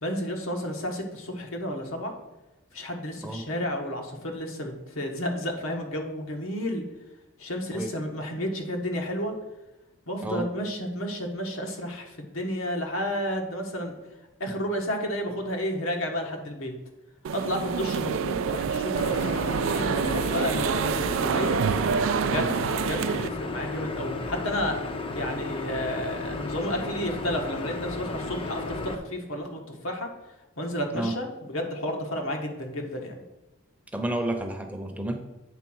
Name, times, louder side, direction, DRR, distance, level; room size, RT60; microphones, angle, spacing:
voice 1, 0.0-2.1 2.7-6.8 7.4-9.3 10.1-13.9 14.4-16.7 17.3-21.6 22.2-24.8 25.1-30.1 30.6-33.2, equal, 75° left, 2 dB, 1.4 m, -31 dB
sound 1, 17.2-23.3, right 6 dB, 65° right, 0.3 m, -27 dB
sound 2, 19.0-29.0, left 3 dB, 25° left, 0.6 m, -34 dB
voice 2, 33.9-35.2, right 1 dB, 5° right, 4 dB, 0.7 m, -30 dB
8.1 x 3.9 x 6.2 m, 1.0 s
head